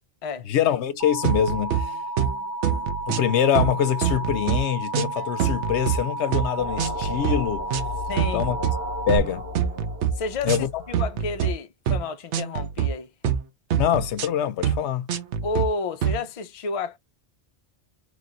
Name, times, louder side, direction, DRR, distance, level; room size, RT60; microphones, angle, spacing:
voice 1, 0.5-2.0 3.1-7.6 8.3-8.6 9.1-9.4 10.4-10.7 13.7-15.1, left 10 dB, 85° left, 0.9 m, -24 dB
Alarm, 1.0-9.2, right 1 dB, 45° right, 1.8 m, -32 dB
sound 1, 1.2-1.8 2.2-2.4 2.6-3.3 3.6-4.6 4.9-6.0 6.3-6.5 6.8-7.4 7.7-7.9 8.2-8.7 9.1-9.3 9.6-10.1 10.5-10.7 10.9-11.5 11.9-12.1 12.3-12.9 13.2-13.4 13.7-14.3 14.6-14.8 15.1-15.7 16.0-16.2, right 9 dB, 90° right, 1.0 m, -24 dB
sound 2, 6.6-11.2, left 3 dB, 70° right, 1.6 m, -35 dB
voice 2, 8.1-8.5 10.1-13.3 15.4-17.0, left 4 dB, 45° left, 0.5 m, -31 dB
3.3 x 3.1 x 3.9 m
omnidirectional pair, 1.1 m